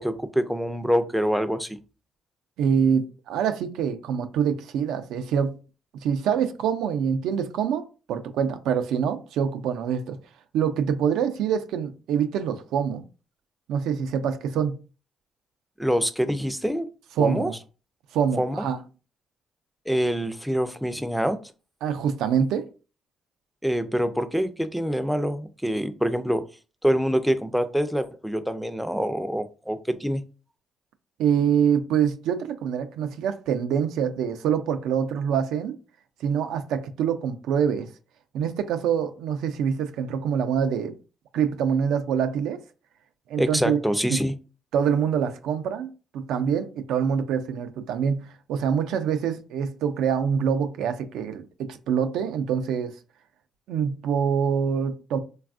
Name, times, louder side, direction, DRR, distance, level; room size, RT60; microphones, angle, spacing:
voice 1, 0.0-1.8 15.8-16.9 17.2-17.5 18.4-18.7 19.9-21.4 23.6-26.4 26.8-30.2 43.4-44.3, equal, ahead, 0.3 m, -25 dB
voice 2, 2.6-5.6 5.9-10.2 10.5-13.0 13.7-14.8 17.2-17.6 18.1-18.8 21.8-22.7 31.2-35.7 36.2-37.9 38.3-40.9 41.3-42.6 43.3-43.8 44.1-44.2 44.7-52.9 53.7-55.2, right 7 dB, 90° right, 0.3 m, -25 dB
3.3 x 2.3 x 2.4 m
cardioid pair, 90°, 0 cm